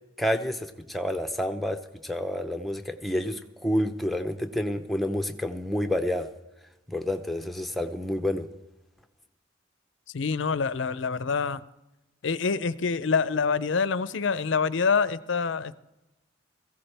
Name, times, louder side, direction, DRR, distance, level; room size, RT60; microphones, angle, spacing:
voice 1, 0.2-6.3 6.9-8.5, left 1 dB, ahead, 0.7 m, -29 dB
voice 2, 10.1-11.6 12.2-15.7, left 5 dB, 70° left, 0.5 m, -26 dB
18.0 x 15.5 x 3.4 m
head